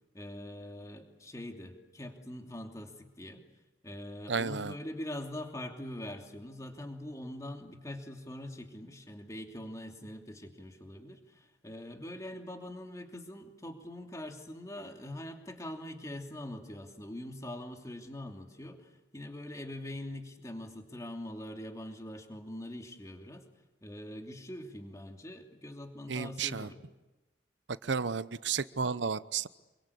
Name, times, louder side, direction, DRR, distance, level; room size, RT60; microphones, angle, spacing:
voice 1, 0.1-3.4 3.8-23.5 23.8-26.8, left 1 dB, 20° left, 3 dB, 2.9 m, -43 dB
voice 2, 4.3-4.7 26.1-26.7 27.9-29.5, right 5 dB, 80° right, 16 dB, 0.8 m, -32 dB
27.5 x 23.5 x 8.5 m, 1.1 s
head